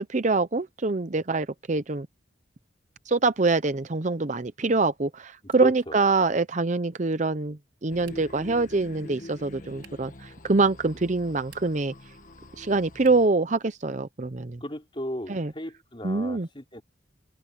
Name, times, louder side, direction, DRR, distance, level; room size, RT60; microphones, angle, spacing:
voice 1, 0.0-2.1 3.1-11.9 12.6-14.6 15.3-15.5 16.0-16.5, right 3 dB, 40° right, 0.7 m, -25 dB
voice 2, 5.6-6.0 14.6-16.8, equal, 25° left, 3.5 m, -35 dB
sound 1, 7.9-13.3, left 1 dB, 45° left, 1.6 m, -45 dB
sound 2, 8.0-8.5 9.8-10.2 11.4-11.9 13.0-13.4, right 10 dB, 80° right, 4.8 m, -54 dB
head